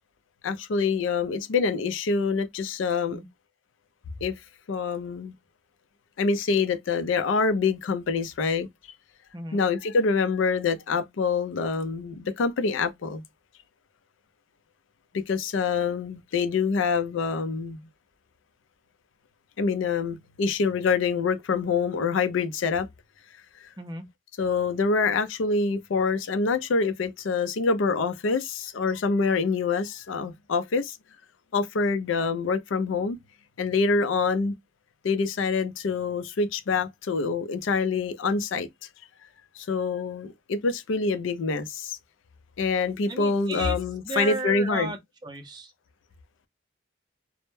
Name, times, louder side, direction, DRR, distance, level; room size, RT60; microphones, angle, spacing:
voice 1, 0.4-3.2 4.2-4.3 4.7-5.3 6.2-8.7 9.5-13.2 15.1-17.8 19.6-22.9 24.4-31.0 31.5-33.2 33.6-34.5 35.0-38.7 39.6-42.0 42.6-44.9, left 4 dB, 85° left, 0.4 m, -26 dB
voice 2, 43.1-43.8 44.0-45.0 45.2-45.7, right 2 dB, 20° right, 0.4 m, -34 dB
2.1 x 2.0 x 3.0 m
head